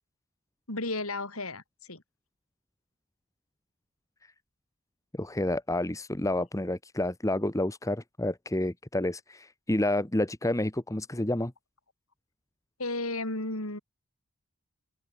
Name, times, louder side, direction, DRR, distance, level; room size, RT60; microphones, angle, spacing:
voice 1, 0.7-2.0 12.8-13.8, left 2 dB, 75° left, 6.4 m, -33 dB
voice 2, 5.1-11.5, left 1 dB, 15° left, 1.4 m, -29 dB
open air
head